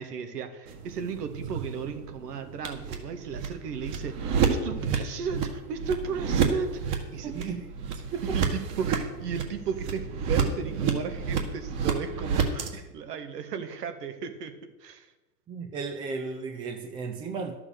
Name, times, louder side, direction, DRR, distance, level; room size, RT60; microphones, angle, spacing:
voice 1, 0.0-7.3 8.3-15.1, right 6 dB, 80° right, 8 dB, 1.8 m, -35 dB
sound 1, 0.7-12.7, right 6 dB, 40° right, 1.9 m, -30 dB
voice 2, 7.2-8.3 12.7-12.8 15.5-17.6, right 4 dB, 10° right, 4 dB, 0.4 m, -35 dB
12.0 x 7.2 x 6.7 m, 1.1 s
hypercardioid pair, 130°, 47 cm